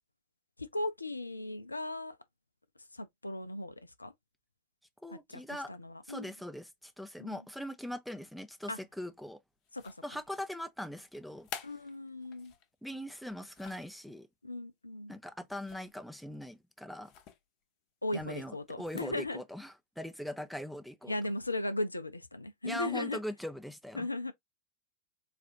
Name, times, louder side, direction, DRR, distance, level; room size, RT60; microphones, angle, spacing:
voice 1, 0.6-2.2 2.9-4.1 5.1-6.3 7.2-7.4 8.7-8.8 9.7-9.9 11.6-12.5 14.4-15.1 18.0-19.4 21.1-23.2 23.9-24.3, left 2 dB, 85° left, 0.4 m, -37 dB
voice 2, 5.0-5.7 6.1-9.4 10.0-11.5 12.8-14.3 15.1-17.1 18.1-21.2 22.6-24.1, equal, ahead, 0.5 m, -41 dB
sound 1, 9.6-10.3 11.1-12.7 13.2-14.0 15.5-16.0 16.3-16.5 17.0-17.4 18.7-19.2, left 7 dB, 40° left, 0.7 m, -49 dB
4.0 x 2.4 x 2.8 m
figure-of-eight pair, 90°, 0 cm